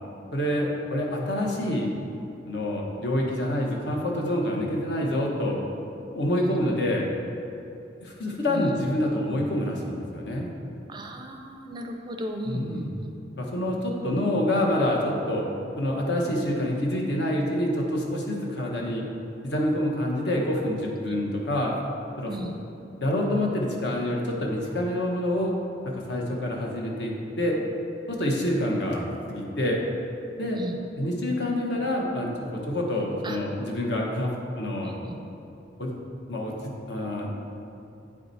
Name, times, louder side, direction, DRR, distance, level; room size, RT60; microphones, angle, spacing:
voice 1, 0.3-1.9 2.5-5.6 6.1-7.1 8.0-10.5 12.5-12.8 13.4-15.5 15.8-19.0 19.4-21.7 22.2-22.3 23.0-25.5 25.8-27.6 28.1-29.8 30.4-30.6 31.0-34.3 34.6-35.0 35.8-35.9 36.3-37.3, left 1 dB, 65° left, -1 dB, 1.1 m, -27 dB
voice 2, 8.5-8.8 10.9-13.2 22.3-22.6 30.6-30.8 33.2-33.4 34.8-35.2, equal, 25° right, 3 dB, 0.5 m, -35 dB
8.7 x 4.9 x 4.1 m, 2.7 s
head